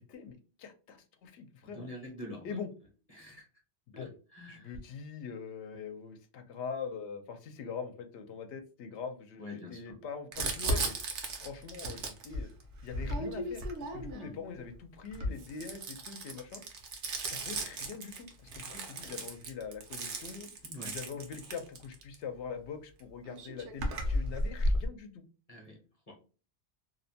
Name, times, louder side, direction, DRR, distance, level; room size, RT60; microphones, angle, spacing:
voice 1, 0.0-1.9 2.4-2.7 3.9-4.1 4.5-11.0 11.4-12.5 12.8-16.6 17.2-20.5 20.8-25.2, left 6 dB, 80° left, 7 dB, 0.8 m, -43 dB
voice 2, 1.6-2.6 3.1-3.5 3.9-4.7 9.4-10.0 14.2-14.4 20.6-21.0 25.5-25.8 26.1-26.2, left 1 dB, 40° left, -1 dB, 0.7 m, -46 dB
Crumpling crinkling, 10.3-14.4 15.1-22.2 23.0-23.1 23.3-24.9, right 1 dB, 75° right, 1.0 m, -35 dB
2.7 x 2.1 x 2.6 m, 0.36 s
omnidirectional pair, 1.2 m